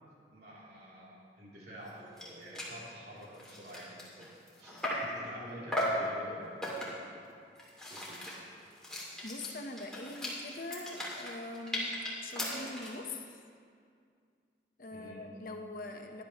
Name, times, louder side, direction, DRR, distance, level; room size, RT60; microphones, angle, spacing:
voice 1, 0.3-4.3 4.6-4.7 5.0-6.6 7.9-8.3 14.9-15.2, equal, 65° right, -6 dB, 3.0 m, -49 dB
sound 1, 1.9-2.0 2.2-2.3 2.5-2.8 3.2-5.2 5.7-6.1 6.6-7.1 7.6-13.0, left 1 dB, 5° left, 2.3 m, -38 dB
voice 2, 9.2-11.9 12.2-13.4 14.8-16.2, left 2 dB, 50° left, 4 dB, 0.9 m, -43 dB
18.0 x 11.0 x 3.0 m, 2.3 s
head